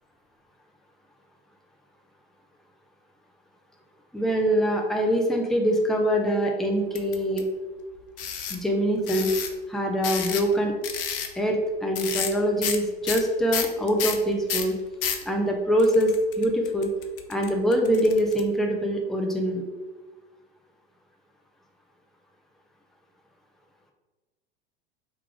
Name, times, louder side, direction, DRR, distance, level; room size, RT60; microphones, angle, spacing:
voice 1, 4.1-7.5 8.5-9.3 9.7-10.7 11.3-14.8 15.3-16.9 17.3-19.6, equal, ahead, 1 dB, 0.6 m, -24 dB
sound 1, 6.9-7.4 8.2-8.6 9.1-9.5 10.0-10.5 10.8-11.3 11.9-12.3 12.6-12.8 13.0-15.2 15.8-18.4, left 7 dB, 65° left, 0.7 m, -30 dB
3.4 x 3.3 x 4.7 m, 1.2 s
figure-of-eight pair, 85°, 30 cm